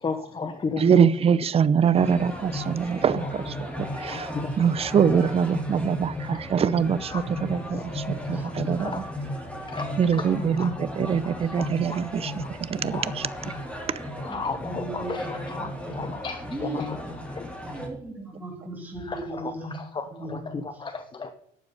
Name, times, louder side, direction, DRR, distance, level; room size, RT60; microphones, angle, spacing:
voice 1, 0.0-1.0 3.2-3.3 3.9-4.7 5.1-5.2 6.2-6.4 7.1-7.2 7.7-7.8 8.2-9.1 9.6-10.3 10.6-10.7 11.3-12.0 12.4-12.5 12.9-13.1 14.2-17.0 17.3-17.8 19.0-21.3, left 4 dB, 30° left, 9 dB, 0.9 m, -35 dB
voice 2, 0.8-9.0 10.0-13.5 13.9-14.1, right 7 dB, 35° right, 15 dB, 0.6 m, -24 dB
sound 1, 1.9-17.9, left 1 dB, 5° left, 3.4 m, -35 dB
voice 3, 14.3-16.2 16.5-16.8 17.7-19.8 20.1-20.7, right 2 dB, 10° right, -2 dB, 3.2 m, -37 dB
12.0 x 8.5 x 4.0 m, 0.67 s
cardioid pair, 110°, 17 cm